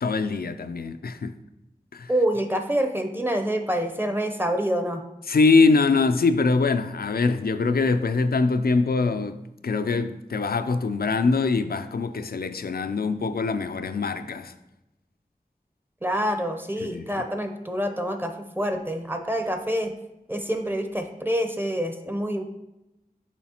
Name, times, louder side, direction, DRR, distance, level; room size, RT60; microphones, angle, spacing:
voice 1, 0.0-1.3 1.9-2.1 5.3-9.4 9.6-14.5 16.8-17.2, left 4 dB, 80° left, 0.4 m, -23 dB
voice 2, 2.1-5.0 16.0-19.9 20.3-22.4, equal, 15° right, 0.6 m, -26 dB
7.2 x 4.7 x 2.9 m
wide cardioid pair, 50°, 16 cm